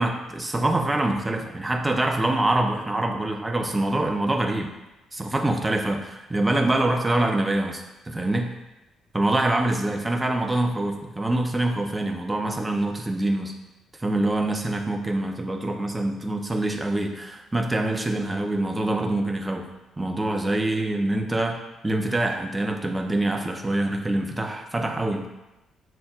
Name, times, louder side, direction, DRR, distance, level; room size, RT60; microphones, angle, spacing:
voice 1, 0.0-4.7 5.1-8.5 9.1-13.5 14.0-19.7 20.0-21.6 21.8-25.3, right 1 dB, 15° right, 2 dB, 0.6 m, -25 dB
5.5 x 2.1 x 3.8 m, 1.0 s
figure-of-eight pair, 40°, 0 cm